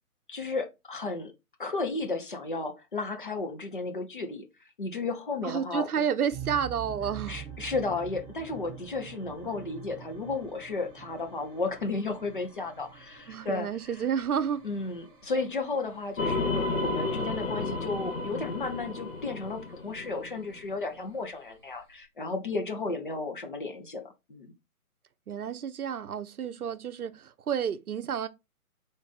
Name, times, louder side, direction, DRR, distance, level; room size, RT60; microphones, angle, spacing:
voice 1, 0.3-1.3 1.6-4.4 4.8-5.9 7.3-13.7 14.6-24.5, left 3 dB, 35° left, 0.6 m, -33 dB
voice 2, 5.4-7.4 13.3-14.7 25.3-28.3, right 8 dB, 70° right, 0.6 m, -30 dB
sound 1, 6.3-22.0, right 8 dB, 20° right, 1.0 m, -47 dB
sound 2, 16.2-20.6, left 3 dB, 60° left, 1.0 m, -32 dB
3.8 x 2.5 x 3.9 m
figure-of-eight pair, 140°, 45 cm